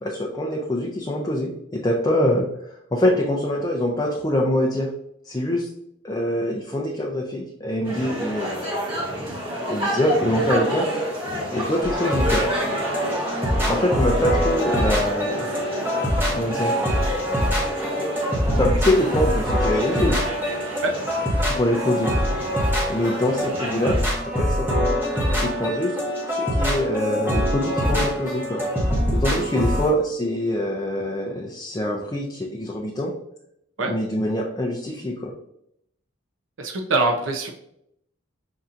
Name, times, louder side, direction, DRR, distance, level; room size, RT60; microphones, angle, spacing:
voice 1, 0.0-2.4 2.9-4.9 5.3-5.7 6.0-8.8 9.7-10.9 11.5-12.5 13.7-15.5 16.3-16.8 18.5-20.2 21.5-22.1 22.9-24.0 24.2-24.7 25.3-25.9 26.3-28.6 29.1-33.1 33.9-35.3, left 1 dB, 20° left, -2 dB, 0.4 m, -24 dB
sound 1, 7.8-24.1, equal, 25° right, 1.3 m, -29 dB
sound 2, 11.8-29.9, equal, 10° right, 0.8 m, -24 dB
voice 2, 36.6-37.5, right 2 dB, 75° right, 3 dB, 0.6 m, -23 dB
5.5 x 2.7 x 2.4 m, 0.75 s
head